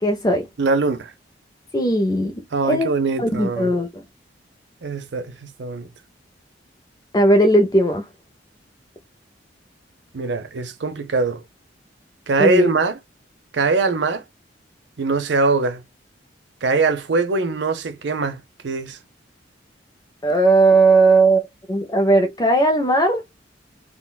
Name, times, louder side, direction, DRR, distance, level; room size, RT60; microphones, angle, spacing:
voice 1, 0.0-0.5 1.7-2.3 2.7-2.9 3.2-3.9 7.1-8.0 12.4-12.7 20.2-23.2, right 2 dB, 20° left, 0.4 m, -17 dB
voice 2, 0.6-1.1 2.5-3.7 4.8-5.9 10.1-11.4 12.3-13.0 13.5-14.2 15.0-15.8 16.6-19.0, right 3 dB, 70° right, 0.6 m, -22 dB
3.7 x 2.2 x 2.2 m
head